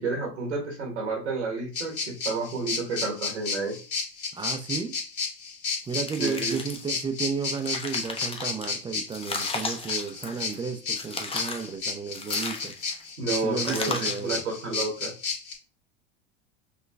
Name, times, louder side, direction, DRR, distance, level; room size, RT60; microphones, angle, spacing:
voice 1, 0.0-3.8 6.2-6.6 13.2-15.1, right 3 dB, 85° right, 1 dB, 1.3 m, -30 dB
sound 1, 1.7-15.5, left 4 dB, 70° left, 1.9 m, -32 dB
voice 2, 4.3-4.9 5.9-12.7 13.4-14.4, right 5 dB, 15° right, 8 dB, 0.5 m, -33 dB
sound 2, 5.9-7.0 7.4-8.7 9.1-10.6 11.0-11.7 12.1-13.0 13.6-14.3, left 3 dB, 15° left, 0.8 m, -35 dB
5.6 x 3.0 x 2.3 m, 0.36 s
hypercardioid pair, 80°, 34 cm